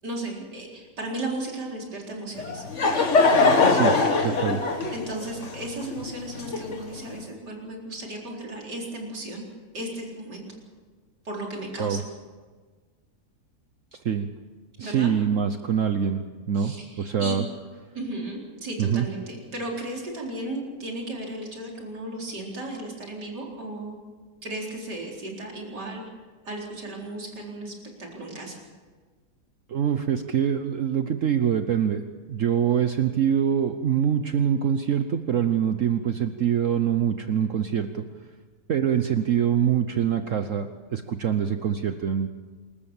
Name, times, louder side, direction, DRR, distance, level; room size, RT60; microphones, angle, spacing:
voice 1, 0.0-2.6 4.9-9.4 9.7-10.4 11.2-12.0 14.8-15.1 16.5-17.4 17.9-24.0 24.4-26.0 26.4-27.7 28.0-28.6, right 1 dB, 85° right, -1 dB, 4.8 m, -35 dB
Laughter / Crowd, 2.4-7.0, left 3 dB, 45° left, 2.1 m, -22 dB
voice 2, 4.2-4.6 11.8-12.0 13.9-14.3 14.8-16.2 16.5-17.4 18.8-19.0 29.7-32.0 32.3-38.0 38.7-42.3, right 8 dB, 55° right, 8 dB, 1.1 m, -24 dB
27.0 x 14.0 x 7.2 m, 1.4 s
omnidirectional pair, 1.8 m